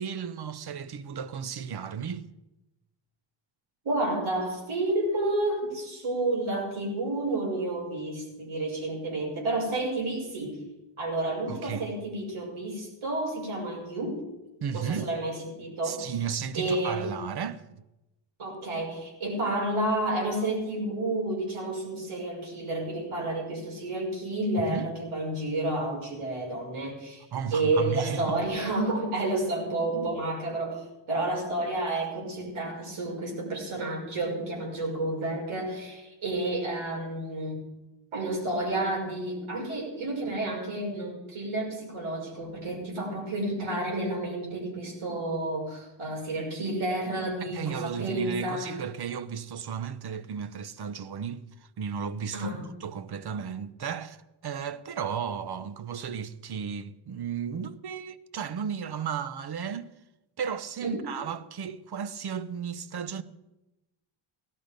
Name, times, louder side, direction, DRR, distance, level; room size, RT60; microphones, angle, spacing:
voice 1, 0.0-2.2 11.5-11.9 14.6-15.1 15.8-17.6 24.7-24.9 27.3-28.4 47.4-51.4 51.8-52.5 52.8-54.2 54.4-59.9 60.4-63.2, right 7 dB, 50° right, 0.9 m, -34 dB
voice 2, 3.8-10.6 11.0-14.2 14.7-16.2 16.5-17.1 18.4-27.2 27.5-37.7 38.1-48.9 52.3-52.6 60.8-61.1, right 2 dB, 75° right, 6.0 m, -30 dB
17.5 x 12.0 x 5.2 m
wide cardioid pair, 125°, 49 cm